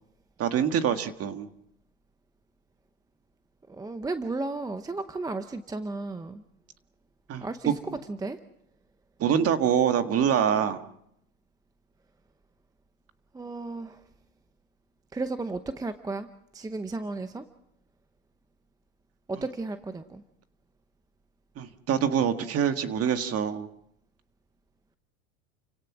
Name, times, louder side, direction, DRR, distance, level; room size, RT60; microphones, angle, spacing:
voice 1, 0.4-1.5 7.3-8.0 9.2-10.8 21.6-23.7, right 8 dB, 35° right, 8 dB, 1.9 m, -25 dB
voice 2, 3.7-6.4 7.4-7.7 8.1-8.4 13.3-14.0 15.1-16.3 16.5-17.5 19.3-20.2, right 3 dB, 10° right, 10 dB, 0.8 m, -34 dB
30.0 x 17.0 x 6.1 m, 0.75 s
hypercardioid pair, 115°, 43 cm